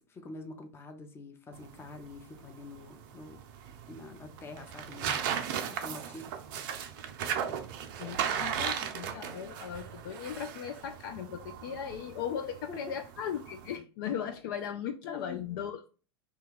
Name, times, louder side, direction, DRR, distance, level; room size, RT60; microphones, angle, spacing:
voice 1, 0.0-3.4 3.9-5.1 5.7-6.3 12.3-12.4 12.7-12.8 15.1-15.6, left 2 dB, 15° left, 0.6 m, -46 dB
sound 1, 1.5-13.8, right 8 dB, 50° right, 0.5 m, -37 dB
voice 2, 8.0-15.9, left 8 dB, 50° left, 0.4 m, -38 dB
2.8 x 2.2 x 3.4 m
figure-of-eight pair, 90°, 14 cm